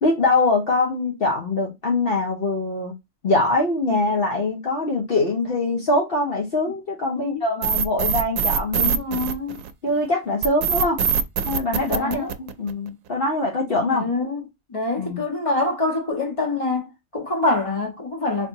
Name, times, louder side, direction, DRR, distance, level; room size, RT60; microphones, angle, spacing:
voice 1, 0.0-2.9 3.2-9.0 9.8-11.0 11.4-14.1 15.0-15.2, left 2 dB, 50° left, 1.1 m, -23 dB
sound 1, 7.6-9.9 10.4-12.9, right 7 dB, 85° right, 1.0 m, -23 dB
voice 2, 8.8-9.6 11.8-12.3 13.9-14.4 14.7-18.5, left 2 dB, 25° left, 1.3 m, -25 dB
4.5 x 2.6 x 2.6 m
omnidirectional pair, 1.3 m